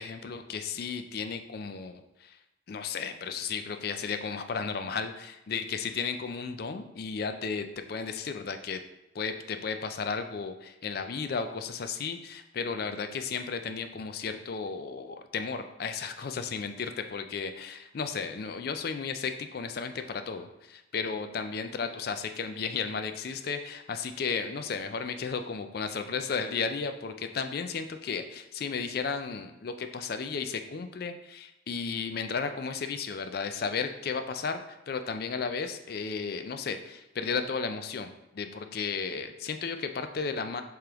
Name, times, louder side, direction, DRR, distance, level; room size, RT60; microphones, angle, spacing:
voice 1, 0.0-2.4 2.7-8.8 9.1-40.6, left 5 dB, 50° left, 8 dB, 0.4 m, -34 dB
4.9 x 3.1 x 3.5 m, 0.91 s
head